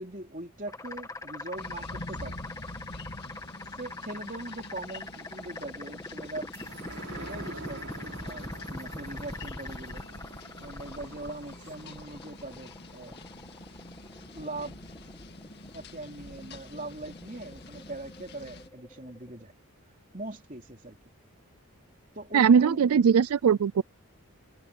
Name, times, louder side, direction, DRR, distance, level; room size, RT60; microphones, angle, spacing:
voice 1, 0.0-2.4 3.7-6.5 7.1-10.1 10.6-13.2 14.3-14.9 15.7-19.5 20.1-21.0 22.1-22.8, right 2 dB, 35° right, 3.5 m, -41 dB
sound 1, 0.7-19.4, left 2 dB, 15° left, 1.7 m, -43 dB
sound 2, 1.6-18.7, left 2 dB, 50° left, 2.2 m, -47 dB
sound 3, 6.5-13.3 13.7-13.8, right 2 dB, 65° right, 7.5 m, -47 dB
voice 2, 22.3-23.8, right 7 dB, 85° right, 0.4 m, -20 dB
open air
head